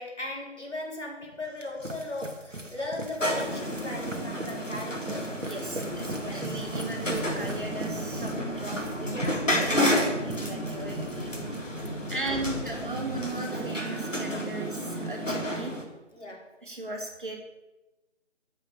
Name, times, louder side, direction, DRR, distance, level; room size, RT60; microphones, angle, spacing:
voice 1, 0.0-5.3 6.2-6.6 9.1-9.5 12.2-12.6 16.1-16.4, left 2 dB, 70° left, -1 dB, 4.9 m, -38 dB
sound 1, 1.2-11.2 11.5-11.9, right 1 dB, 85° right, 2.0 m, -39 dB
sound 2, 3.2-15.8, equal, 90° left, 3.6 m, -31 dB
voice 2, 5.4-11.3 12.1-15.7 16.6-17.4, right 2 dB, 45° right, 2 dB, 2.7 m, -37 dB
sound 3, 5.9-13.2, left 1 dB, 5° right, 2.4 m, -42 dB
9.2 x 8.2 x 8.8 m, 1.0 s
figure-of-eight pair, 165°, 37 cm